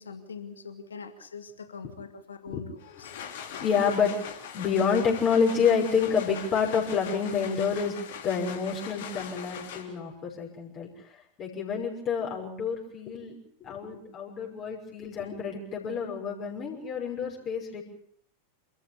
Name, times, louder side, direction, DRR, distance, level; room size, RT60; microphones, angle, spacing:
voice 1, 0.0-3.1, left 5 dB, 70° left, 9 dB, 2.2 m, -43 dB
sound 1, 2.8-10.1, left 8 dB, 55° left, 3.4 m, -41 dB
voice 2, 3.3-4.1 4.5-7.9 8.2-10.9 11.4-17.8, left 6 dB, 30° left, -1 dB, 6.2 m, -28 dB
27.5 x 14.5 x 8.4 m, 0.66 s
figure-of-eight pair, 90°, 0 cm